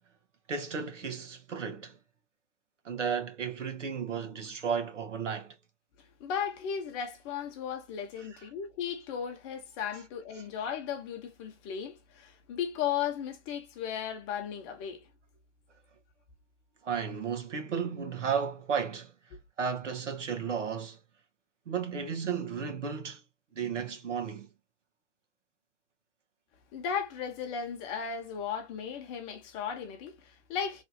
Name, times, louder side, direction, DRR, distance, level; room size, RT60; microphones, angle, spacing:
voice 1, 0.5-2.0 2.8-5.5 8.2-8.3 16.8-19.1 19.6-21.0 21.7-23.2 23.5-24.5, right 6 dB, 85° right, 1.3 m, -33 dB
voice 2, 6.2-15.1 19.3-19.4 26.7-30.8, left 8 dB, 25° left, 0.9 m, -36 dB
3.4 x 2.5 x 2.7 m
hypercardioid pair, 145°, 36 cm